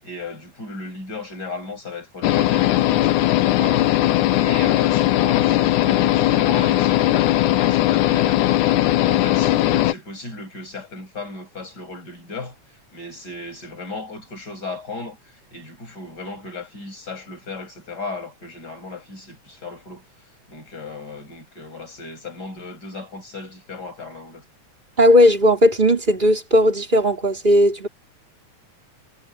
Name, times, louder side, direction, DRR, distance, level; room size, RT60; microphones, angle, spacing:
voice 1, 0.0-3.9 4.3-8.4 8.8-12.6 12.9-15.2 15.5-20.1 20.5-24.4, left 3 dB, 30° left, 7.9 m, -35 dB
sound 1, 2.2-9.9, left 14 dB, 90° left, 2.4 m, -18 dB
voice 2, 25.0-27.9, left 1 dB, 15° right, 4.6 m, -16 dB
omnidirectional pair, 3.4 m